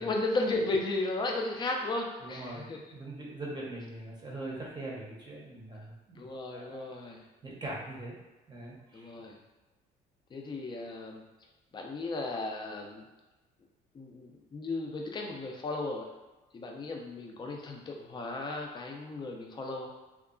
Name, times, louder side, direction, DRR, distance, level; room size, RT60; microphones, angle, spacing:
voice 1, 0.0-2.8 6.1-7.2 8.9-9.4 10.3-11.2 11.7-13.0 13.9-16.1 16.5-19.9, left 2 dB, 25° left, 1 dB, 0.5 m, -35 dB
voice 2, 2.2-6.9 7.4-8.2 8.5-9.1, right 2 dB, 25° right, -4 dB, 0.7 m, -42 dB
2.7 x 2.3 x 2.4 m, 1.1 s
cardioid pair, 110°, 17 cm